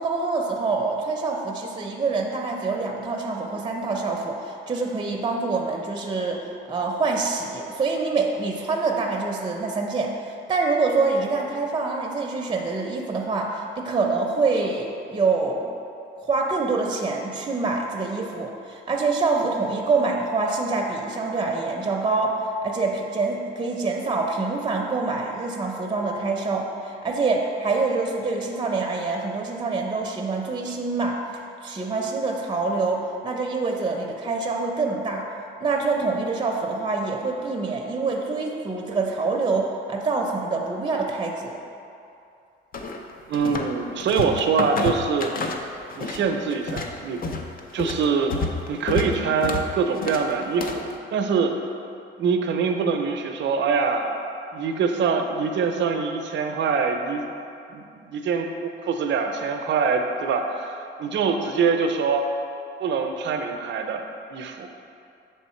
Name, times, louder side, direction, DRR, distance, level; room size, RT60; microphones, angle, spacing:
voice 1, 0.0-15.7 16.2-31.2 31.6-41.6, right 3 dB, 25° right, 1 dB, 0.6 m, -26 dB
sound 1, 42.7-43.7 44.0-46.2 46.5-50.9, left 3 dB, 45° left, 0.5 m, -29 dB
voice 2, 43.3-45.3 46.0-47.2 47.7-51.5 52.2-54.2 54.5-57.2 57.7-62.3 62.8-64.0 64.3-64.7, right 5 dB, 70° right, 5 dB, 0.6 m, -24 dB
7.2 x 3.4 x 4.3 m, 2.6 s
cardioid pair, 90°, 20 cm